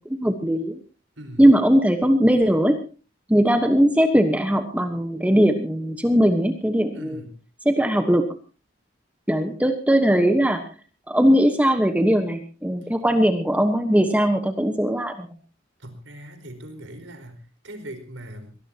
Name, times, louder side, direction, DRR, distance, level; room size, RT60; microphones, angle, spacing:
voice 1, 0.0-0.8 1.4-2.8 3.3-7.2 7.6-8.4 9.3-10.6 11.1-15.3, equal, 5° right, 6 dB, 1.2 m, -19 dB
voice 2, 1.2-1.5 6.9-7.4 15.8-18.6, equal, 75° right, 8 dB, 4.5 m, -40 dB
23.5 x 18.0 x 2.9 m, 0.35 s
head